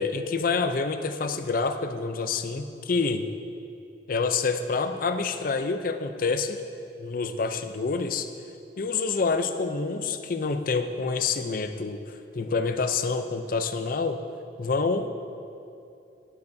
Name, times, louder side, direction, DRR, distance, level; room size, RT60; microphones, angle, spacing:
voice 1, 0.0-3.2 4.1-6.6 7.0-8.3 8.8-14.2 14.6-15.1, left 4 dB, 45° left, 9 dB, 0.5 m, -27 dB
12.0 x 11.0 x 2.7 m, 2.7 s
head